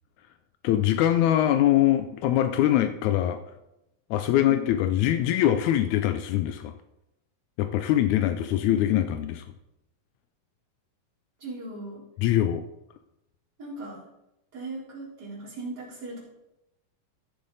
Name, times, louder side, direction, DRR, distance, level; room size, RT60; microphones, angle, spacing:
voice 1, 0.6-3.4 4.1-6.7 7.6-9.4 12.2-12.6, left 12 dB, 85° left, 9 dB, 1.6 m, -23 dB
voice 2, 4.4-4.8 11.4-12.0 13.6-14.0 14.5-16.2, right 1 dB, 30° right, -6 dB, 4.1 m, -38 dB
15.0 x 6.8 x 4.0 m, 0.88 s
omnidirectional pair, 3.9 m